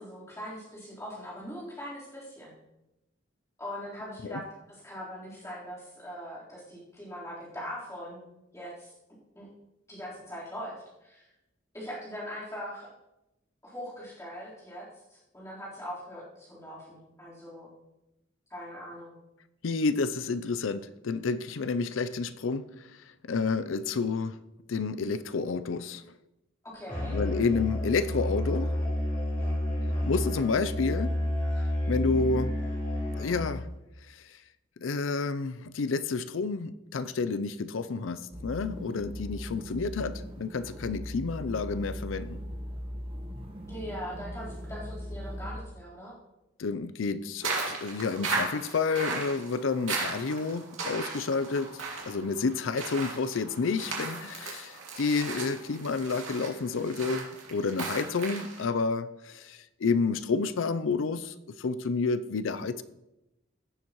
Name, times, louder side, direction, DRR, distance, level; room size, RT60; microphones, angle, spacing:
voice 1, 0.0-2.5 3.6-8.2 8.5-8.9 9.3-9.5 9.9-11.3 11.7-12.9 13.6-17.7 18.5-19.2 26.7-27.2 43.7-46.1, equal, 15° left, -8 dB, 3.9 m, -41 dB
voice 2, 19.6-22.7 23.2-24.4 24.7-26.0 27.1-28.7 30.1-31.1 31.9-32.5 33.1-33.7 34.8-42.4 46.6-51.7 52.0-62.8, left 4 dB, 85° left, 13 dB, 0.5 m, -30 dB
Musical instrument, 26.9-33.7, left 1 dB, 40° left, 3.3 m, -30 dB
sound 1, 38.3-45.6, equal, 25° right, 1.1 m, -39 dB
sound 2, 47.4-58.6, right 3 dB, 85° right, 2.6 m, -36 dB
16.0 x 7.2 x 3.1 m, 0.94 s
head